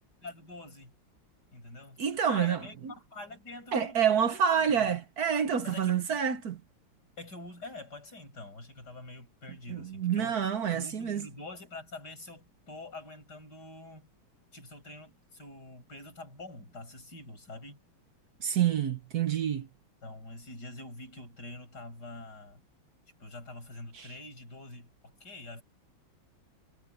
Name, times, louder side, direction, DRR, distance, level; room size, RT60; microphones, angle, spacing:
voice 1, 0.2-0.9 1.5-5.0 5.6-6.1 7.2-10.4 10.7-14.1 14.5-17.8 20.0-22.6 23.2-25.6, left 2 dB, 50° left, 8.6 m, -46 dB
voice 2, 2.0-2.6 3.7-6.6 9.7-11.2 18.4-19.7 23.9-24.1, right 8 dB, 55° right, 1.3 m, -28 dB
omnidirectional pair, 2.3 m